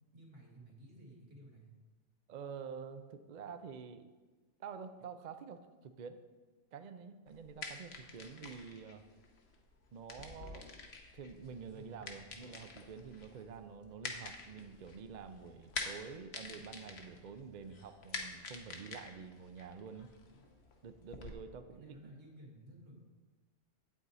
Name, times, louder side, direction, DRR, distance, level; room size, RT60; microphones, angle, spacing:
voice 1, 0.1-1.7 11.7-11.9 21.7-23.0, right 1 dB, 75° right, -2 dB, 2.5 m, -55 dB
voice 2, 2.3-4.0 4.6-6.2 6.7-9.1 9.9-10.7 11.1-20.1 20.8-22.0, right 6 dB, 55° right, 9 dB, 0.5 m, -48 dB
sound 1, 7.3-21.3, left 3 dB, 60° left, 1.2 m, -48 dB
8.8 x 8.5 x 4.0 m, 1.3 s
omnidirectional pair, 1.2 m